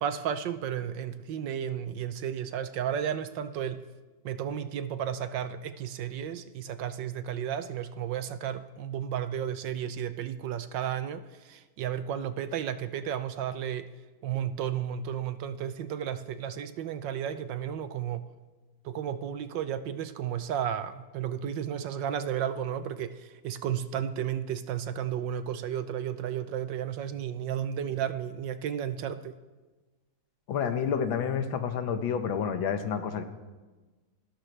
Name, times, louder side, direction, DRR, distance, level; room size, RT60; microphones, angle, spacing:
voice 1, 0.0-3.8 4.2-13.9 14.2-18.3 18.8-29.4, right 9 dB, 70° right, 11 dB, 1.3 m, -33 dB
voice 2, 30.5-33.2, left 7 dB, 75° left, 8 dB, 1.8 m, -29 dB
27.5 x 12.5 x 3.3 m, 1.3 s
omnidirectional pair, 2.2 m